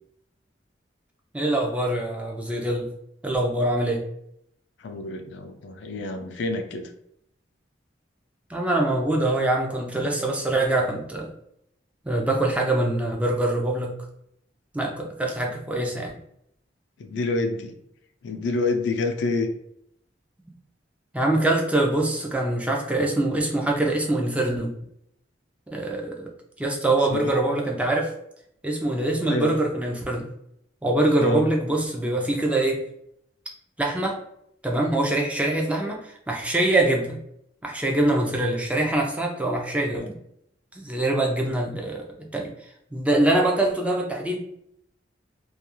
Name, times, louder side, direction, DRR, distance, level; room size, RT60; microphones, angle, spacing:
voice 1, 1.3-2.9 3.2-4.0 8.5-11.3 12.1-13.9 14.7-16.2 21.1-24.7 25.7-26.3 26.6-28.1 28.6-30.3 30.8-32.8 33.8-34.2 34.6-37.2 37.6-40.1 40.7-42.5 42.9-44.4, right 1 dB, 5° right, 0 dB, 0.4 m, -24 dB
voice 2, 4.8-6.9 17.0-17.7 18.2-19.5 27.1-27.3 29.3-29.5 31.2-31.5 39.9-40.1, left 2 dB, 75° left, 6 dB, 0.4 m, -27 dB
2.3 x 2.3 x 2.9 m, 0.74 s
head